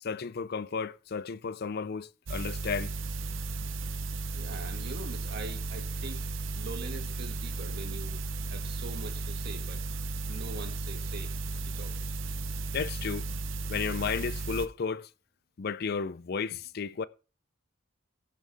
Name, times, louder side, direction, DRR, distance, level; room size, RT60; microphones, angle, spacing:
voice 1, 0.0-2.9 12.7-13.3 13.7-15.1 15.6-17.1, left 5 dB, 50° left, 0.4 m, -33 dB
sound 1, 2.3-14.7, right 3 dB, 70° right, 0.8 m, -35 dB
voice 2, 4.3-6.3 6.5-8.2 8.5-9.8 10.3-11.3 11.7-12.0, right 2 dB, 55° right, 2.1 m, -43 dB
15.0 x 7.4 x 3.5 m
head